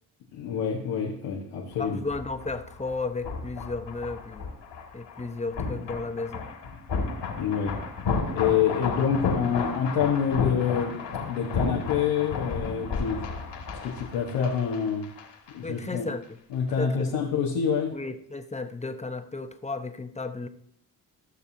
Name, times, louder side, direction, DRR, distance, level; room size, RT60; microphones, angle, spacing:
voice 1, 0.3-2.0 7.4-7.7 8.3-11.0 11.3-13.2 13.8-15.1 15.5-16.0 16.5-17.9, left 7 dB, 85° left, -3 dB, 1.4 m, -27 dB
sound 1, 1.7-15.5 15.8-15.9, left 4 dB, 70° left, 2.2 m, -33 dB
voice 2, 1.8-4.4 4.9-6.5 15.6-16.4 16.8-17.1 17.9-20.5, left 3 dB, 15° left, 9 dB, 1.0 m, -34 dB
15.0 x 6.7 x 2.8 m, 0.68 s
hypercardioid pair, 45°, 44 cm